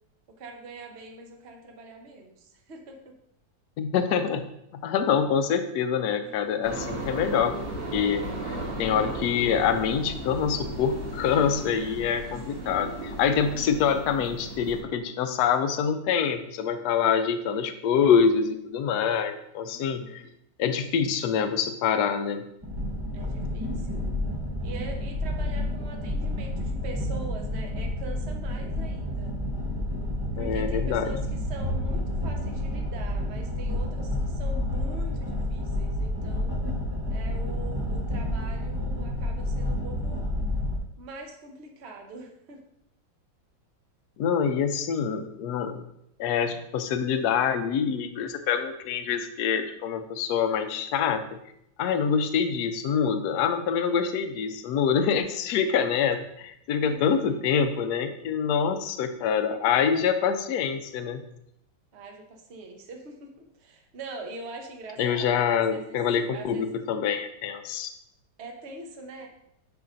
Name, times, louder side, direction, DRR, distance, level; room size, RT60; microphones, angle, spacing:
voice 1, 0.3-3.1 6.2-6.6 12.6-13.2 19.6-20.3 23.1-23.8 24.6-29.3 30.3-36.5 37.1-40.2 41.0-42.6 56.8-57.5 61.9-66.0 66.3-66.8 68.4-69.3, right 3 dB, 45° right, 2 dB, 1.0 m, -43 dB
voice 2, 3.8-4.4 4.7-7.5 7.9-20.2 20.6-22.4 30.4-31.1 44.2-45.8 46.2-51.2 51.8-61.2 65.0-67.9, left 7 dB, 70° left, 8 dB, 1.0 m, -25 dB
sound 1, 6.6-14.8, right 1 dB, 80° right, 3.1 m, -36 dB
sound 2, 8.1-12.7, equal, 35° left, 1.1 m, -46 dB
sound 3, 22.6-40.8, left 1 dB, 25° right, 0.5 m, -30 dB
11.0 x 4.7 x 2.6 m, 0.77 s
omnidirectional pair, 2.1 m